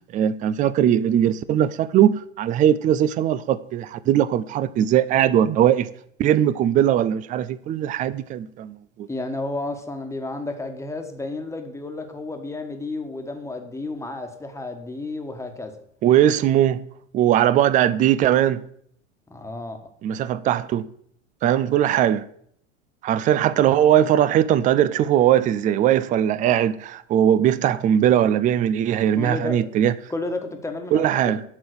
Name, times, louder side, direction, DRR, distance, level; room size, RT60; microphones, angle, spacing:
voice 1, 0.1-5.9 6.2-9.1 16.0-16.8 17.1-18.6 20.0-20.9 21.4-22.3 23.0-29.9 30.9-31.4, right 10 dB, 20° right, 0.4 m, -20 dB
voice 2, 9.1-15.8 19.3-19.8 29.1-29.7 30.1-31.4, left 2 dB, 5° left, 1.4 m, -32 dB
11.5 x 3.9 x 6.5 m
hypercardioid pair, 90°, 39 cm